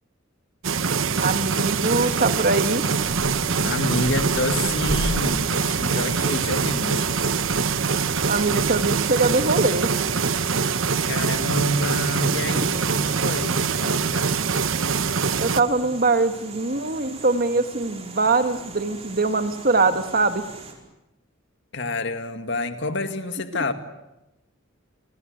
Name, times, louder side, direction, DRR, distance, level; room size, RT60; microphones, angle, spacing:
sound 1, 0.6-15.6, right 5 dB, 85° right, 1.0 m, -24 dB
sound 2, 0.9-20.7, right 4 dB, 30° right, 5.0 m, -41 dB
voice 1, 1.2-2.8 8.3-9.9 13.8-14.0 14.5-14.6 15.4-20.4 23.5-23.6, right 3 dB, 45° right, 1.8 m, -22 dB
Animal, 3.0-9.5, equal, 15° right, 5.3 m, -37 dB
voice 2, 3.5-7.1 11.0-14.4 21.7-23.7, left 1 dB, 65° left, 2.3 m, -28 dB
30.0 x 23.5 x 8.1 m
head